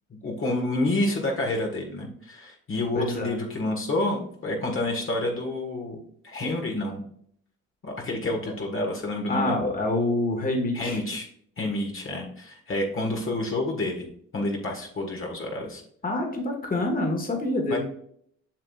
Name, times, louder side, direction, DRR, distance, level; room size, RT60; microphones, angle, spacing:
voice 1, 0.2-6.0 6.2-7.0 7.8-9.6 10.7-11.3 11.6-14.1 14.3-15.8 17.7-17.8, left 2 dB, 45° left, 0 dB, 1.6 m, -29 dB
voice 2, 2.9-3.4 9.3-11.0 16.0-17.8, left 2 dB, 30° left, 2 dB, 1.7 m, -26 dB
7.5 x 6.0 x 2.4 m, 0.65 s
cardioid pair, 90°, 30 cm